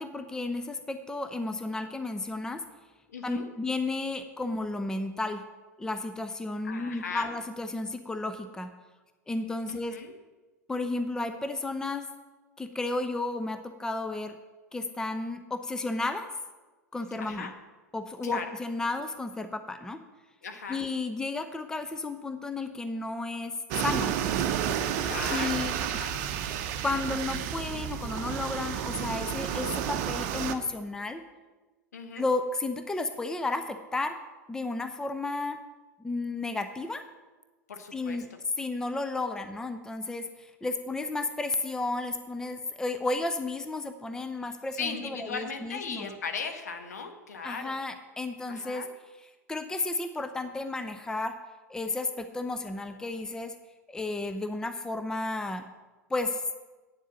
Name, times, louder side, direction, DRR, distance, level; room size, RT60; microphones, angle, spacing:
voice 1, 0.0-2.6 3.2-5.4 5.8-8.7 9.3-10.0 10.7-12.1 12.6-14.4 14.7-16.3 16.9-17.5 17.9-20.0 20.7-24.1 25.3-25.8 26.8-31.2 32.1-34.1 34.5-35.6 36.0-37.0 37.9-38.3 38.6-46.1 47.4-48.9 49.2-51.3 51.7-53.5 53.9-55.6 56.1-56.4, left 2 dB, 5° left, 9 dB, 0.6 m, -33 dB
voice 2, 3.1-3.4 6.6-7.3 9.7-10.1 17.2-17.5 18.2-18.5 20.4-20.8 25.0-26.2 31.9-32.3 37.7-38.2 44.8-47.7 48.5-48.9, left 5 dB, 65° left, 5 dB, 1.3 m, -37 dB
sound 1, 23.7-30.6, right 9 dB, 45° right, 0.8 m, -31 dB
8.9 x 7.3 x 7.1 m, 1.2 s
figure-of-eight pair, 90°, 9 cm